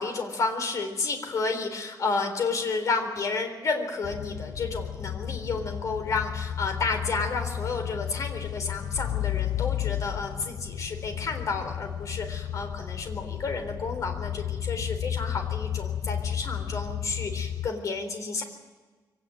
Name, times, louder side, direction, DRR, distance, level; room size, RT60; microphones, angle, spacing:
voice 1, 0.0-18.4, left 4 dB, 50° left, 6 dB, 3.9 m, -31 dB
sound 1, 4.0-17.7, left 10 dB, 70° left, 0.7 m, -33 dB
23.5 x 18.0 x 9.3 m, 1.3 s
wide cardioid pair, 180°, 7 cm